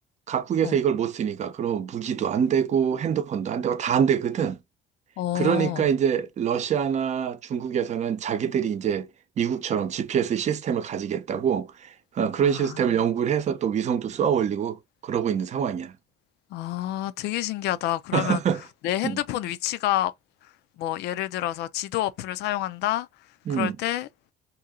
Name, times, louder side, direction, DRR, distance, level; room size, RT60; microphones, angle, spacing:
voice 1, 0.3-4.6 5.3-9.1 9.4-15.9 18.1-18.6 19.0-19.2 23.5-23.8, right 8 dB, 45° right, 0.6 m, -25 dB
voice 2, 5.2-5.9 12.4-13.0 16.5-18.4 18.8-20.1 20.4-23.1 23.5-24.1, left 14 dB, 80° left, 0.5 m, -28 dB
2.8 x 2.7 x 3.6 m
cardioid pair, 110°, 17 cm